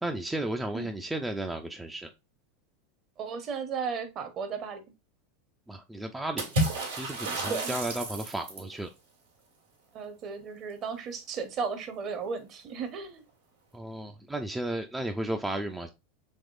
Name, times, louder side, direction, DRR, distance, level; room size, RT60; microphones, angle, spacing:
voice 1, 0.0-2.1 5.7-6.5 7.0-8.9 13.7-15.9, right 1 dB, 10° right, 0.4 m, -34 dB
voice 2, 3.2-4.8 7.5-7.8 9.9-13.2, right 5 dB, 40° right, 0.8 m, -35 dB
Water / Splash splatter, 6.4-8.7, right 1 dB, 85° right, 1.6 m, -31 dB
3.5 x 3.0 x 2.4 m
hypercardioid pair, 100°, 0 cm